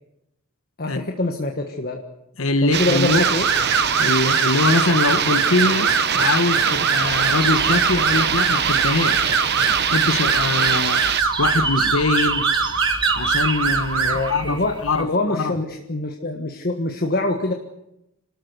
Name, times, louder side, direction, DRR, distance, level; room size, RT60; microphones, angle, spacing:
voice 1, 0.8-2.0 2.6-3.5 14.0-17.5, left 2 dB, 45° left, 1.5 m, -25 dB
voice 2, 2.4-3.2 4.0-9.4 9.8-11.1 11.4-12.5 13.2-15.5, left 3 dB, 70° left, 1.2 m, -23 dB
sound 1, 2.7-11.2, right 8 dB, 55° right, 0.9 m, -23 dB
sound 2, 3.1-14.3, right 5 dB, 75° right, 2.6 m, -22 dB
sound 3, 7.0-15.0, right 4 dB, 20° right, 1.4 m, -31 dB
28.5 x 13.5 x 8.0 m
head